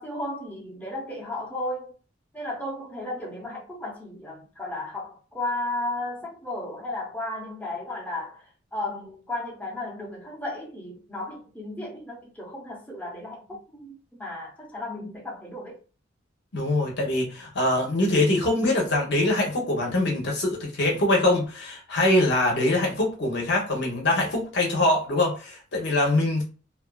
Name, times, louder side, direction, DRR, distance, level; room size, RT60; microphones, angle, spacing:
voice 1, 0.0-1.9 2.3-15.8, left 2 dB, 10° left, 0.7 m, -34 dB
voice 2, 16.5-26.4, left 1 dB, 55° left, 0.8 m, -23 dB
2.5 x 2.3 x 2.3 m
head